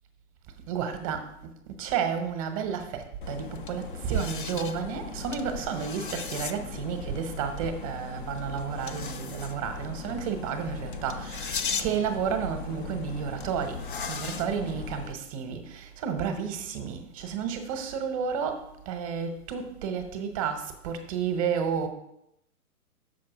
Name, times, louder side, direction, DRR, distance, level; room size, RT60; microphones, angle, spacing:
voice 1, 0.7-1.3 1.8-13.8 14.1-21.9, right 7 dB, 25° right, 0.8 m, -31 dB
sound 1, 3.2-15.1, left 5 dB, 35° left, 0.4 m, -37 dB
6.3 x 4.8 x 6.0 m
figure-of-eight pair, 135°, 45 cm